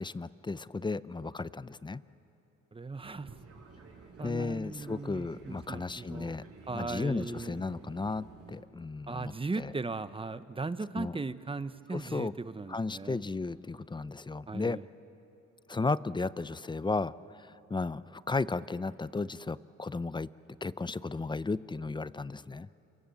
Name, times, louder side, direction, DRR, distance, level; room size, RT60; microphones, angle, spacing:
voice 1, 0.0-2.0 4.2-6.4 6.7-9.7 10.9-11.2 11.9-12.3 12.7-14.8 15.7-20.3 20.6-22.7, left 3 dB, 15° left, 17 dB, 0.5 m, -34 dB
voice 2, 2.7-3.3 4.2-6.3 6.7-7.6 9.1-13.2 14.5-14.8, right 3 dB, 20° right, 13 dB, 0.9 m, -38 dB
Fixed-wing aircraft airplane, 3.0-8.6, right 4 dB, 50° right, 4.7 m, -52 dB
27.0 x 23.5 x 7.9 m, 3.0 s
cardioid pair, 90°, 30 cm